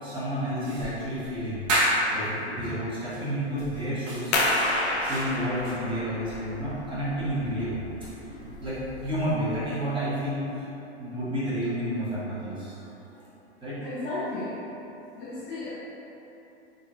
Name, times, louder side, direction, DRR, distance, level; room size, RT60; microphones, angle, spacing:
voice 1, 0.0-1.8 2.1-4.4 5.0-7.8 8.2-10.7 11.0-12.9 13.6-13.8, equal, 15° right, -11 dB, 1.2 m, -31 dB
sound 1, 0.6-2.3 3.1-3.2 3.6-5.7, right 1 dB, 50° right, 1.2 m, -30 dB
sound 2, 4.3-9.7, left 1 dB, 80° left, 0.7 m, -30 dB
voice 2, 13.8-14.6 15.1-15.7, left 2 dB, 30° left, -9 dB, 0.8 m, -34 dB
3.9 x 3.2 x 2.5 m, 3.0 s
hypercardioid pair, 115°, 34 cm